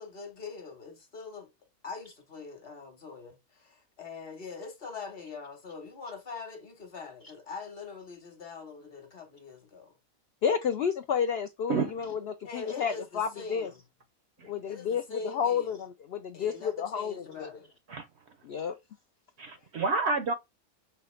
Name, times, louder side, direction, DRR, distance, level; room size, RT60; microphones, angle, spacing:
voice 1, 0.0-1.5 1.8-10.0 12.4-13.8 14.7-15.8 16.3-17.7, left 4 dB, 45° left, 1.2 m, -43 dB
voice 2, 10.4-13.7 14.4-17.5 18.5-18.8, left 7 dB, 70° left, 0.6 m, -31 dB
voice 3, 11.7-12.2 14.4-14.5 17.9-18.1 19.4-20.3, right 4 dB, 65° right, 0.7 m, -30 dB
5.6 x 2.8 x 3.1 m
omnidirectional pair, 1.5 m